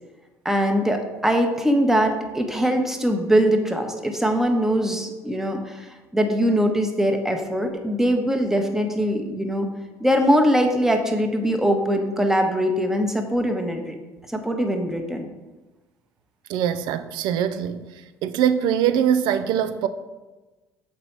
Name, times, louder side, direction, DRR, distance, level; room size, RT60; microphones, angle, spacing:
voice 1, 0.4-9.7 10.0-14.0 14.3-15.3, equal, 5° right, 1.0 m, -22 dB
voice 2, 16.5-17.9 18.2-19.9, right 9 dB, 65° right, 0.5 m, -22 dB
6.7 x 4.2 x 4.5 m
hypercardioid pair, 65°, 8 cm